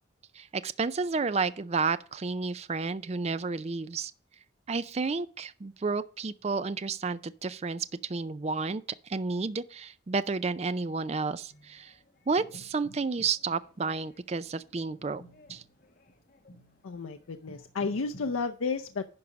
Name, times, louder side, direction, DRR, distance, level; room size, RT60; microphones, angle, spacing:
voice 1, 0.3-4.1 4.7-11.9 12.3-15.2 15.5-15.6, right 4 dB, 30° right, 0.4 m, -31 dB
sound 1, 11.5-18.4, equal, 45° left, 1.4 m, -53 dB
voice 2, 16.8-19.1, left 4 dB, 90° left, 0.6 m, -32 dB
10.5 x 4.9 x 5.2 m
head